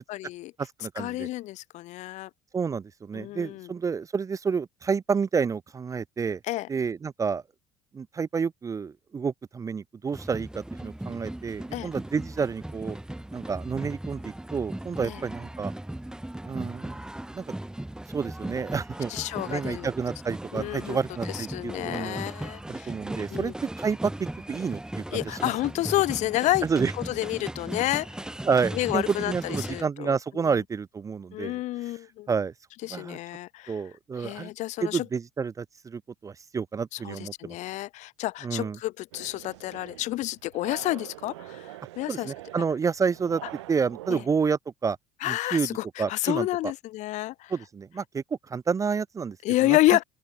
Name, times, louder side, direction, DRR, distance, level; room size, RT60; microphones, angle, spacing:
voice 1, 0.0-0.5 1.0-2.3 3.1-3.7 6.5-6.7 11.7-11.9 15.0-15.2 19.1-19.9 20.5-21.0 21.3-22.9 23.3-23.5 25.1-26.7 27.1-28.1 28.7-30.1 31.3-32.3 32.8-33.7 34.2-35.1 36.9-42.3 44.1-44.2 45.2-47.5 49.4-50.0, left 17 dB, 55° left, 0.9 m, -29 dB
voice 2, 0.6-1.3 2.5-6.4 6.7-7.4 7.9-13.0 13.3-15.7 16.4-17.0 17.3-17.5 18.1-19.1 19.5-22.2 22.7-25.5 26.6-26.9 28.4-31.6 32.3-32.5 32.9-33.2 33.7-34.5 34.8-37.6 38.4-38.8 42.1-43.4 43.7-45.0 45.2-46.5 47.5-49.4 49.6-49.8, right 5 dB, 20° right, 0.5 m, -29 dB
sound 1, 10.1-29.8, right 1 dB, 5° right, 1.1 m, -37 dB
sound 2, 39.1-44.2, right 18 dB, 80° right, 2.3 m, -44 dB
open air
hypercardioid pair, 70°, 14 cm